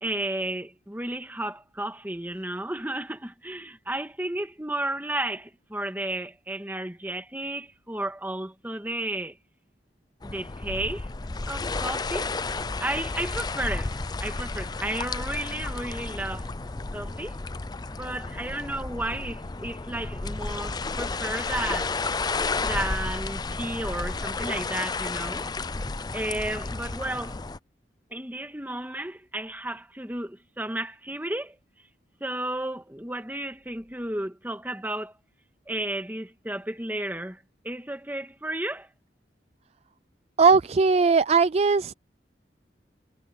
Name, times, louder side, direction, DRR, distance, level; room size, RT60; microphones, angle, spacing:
voice 1, 0.0-9.4 10.2-11.1 11.5-12.3 12.8-16.5 16.9-17.3 17.9-22.0 22.6-25.5 26.1-27.4 28.1-31.6 32.2-35.1 35.7-38.9, right 1 dB, 10° right, 1.9 m, -33 dB
sound 1, 10.2-27.6, left 3 dB, 25° left, 0.5 m, -32 dB
voice 2, 40.4-41.9, right 4 dB, 35° right, 0.4 m, -19 dB
head